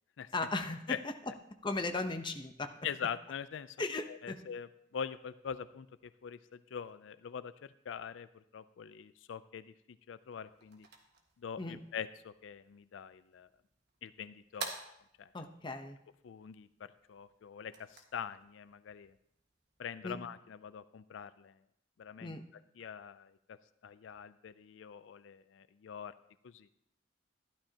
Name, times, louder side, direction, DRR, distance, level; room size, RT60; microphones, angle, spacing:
voice 1, 0.3-1.1 1.6-2.7 3.8-4.4 11.6-11.8 15.3-16.0 20.0-20.2 22.2-22.4, left 2 dB, 25° left, 6 dB, 0.8 m, -37 dB
voice 2, 2.8-3.8 4.1-10.9 11.4-13.5 14.0-14.8 15.2-15.3 16.2-19.2 19.8-21.6 22.0-22.4 22.8-26.1 26.4-26.7, left 7 dB, 85° left, 14 dB, 0.4 m, -44 dB
sound 1, 10.2-20.0, right 4 dB, 60° right, 1.5 m, -51 dB
12.5 x 11.5 x 2.8 m, 0.76 s
head